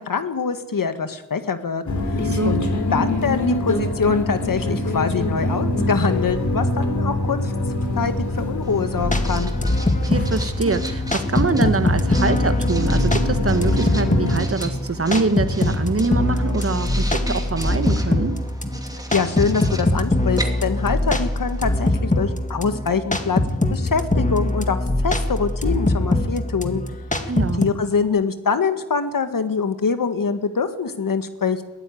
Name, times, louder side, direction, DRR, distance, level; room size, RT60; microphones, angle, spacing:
voice 1, 0.0-2.6 2.9-7.5 8.0-9.5 18.9-23.4 23.7-26.8 27.6-31.6, left 5 dB, 80° left, 9 dB, 1.8 m, -24 dB
sound 1, 1.9-14.4, left 1 dB, 60° left, 3.3 m, -25 dB
voice 2, 2.3-2.6 10.1-18.4 27.3-27.6, right 3 dB, 45° right, 10 dB, 1.5 m, -24 dB
Writing, 8.6-21.9, right 1 dB, 10° right, 2.5 m, -38 dB
sound 2, 9.0-27.7, left 1 dB, 20° left, 2.0 m, -23 dB
21.5 x 15.0 x 9.4 m, 1.0 s
wide cardioid pair, 105°, 33 cm